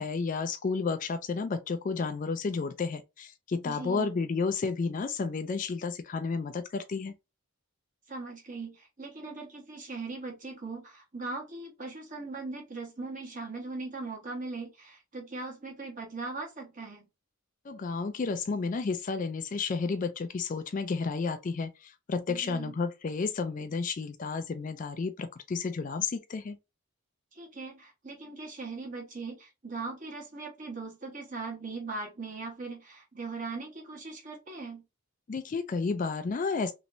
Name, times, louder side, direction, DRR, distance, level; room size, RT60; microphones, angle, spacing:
voice 1, 0.0-7.1 17.7-26.6 35.3-36.7, left 4 dB, 35° left, 0.3 m, -32 dB
voice 2, 3.6-4.1 8.1-17.1 22.3-22.7 27.3-34.8, right 3 dB, 35° right, 1.2 m, -40 dB
3.1 x 3.0 x 2.6 m
head